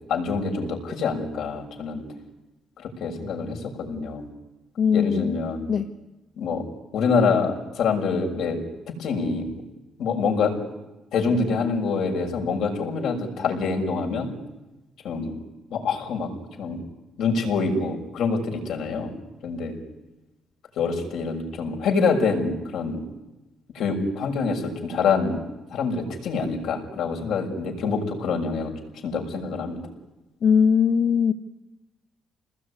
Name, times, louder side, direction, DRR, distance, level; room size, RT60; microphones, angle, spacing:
voice 1, 0.1-2.0 2.8-4.2 4.9-5.7 6.4-6.6 6.9-8.6 9.0-9.5 10.0-10.5 11.1-14.3 15.0-15.3 15.7-16.3 16.6-16.8 17.2-19.1 19.4-19.8 20.8-23.0 23.7-25.4 25.7-28.7 29.0-29.8, left 4 dB, 80° left, 2 dB, 6.5 m, -25 dB
voice 2, 4.8-5.4 5.7-5.9 30.4-31.3, left 7 dB, 60° left, 7 dB, 1.5 m, -20 dB
28.0 x 20.0 x 9.9 m, 1.0 s
cardioid pair, 90°, 0 cm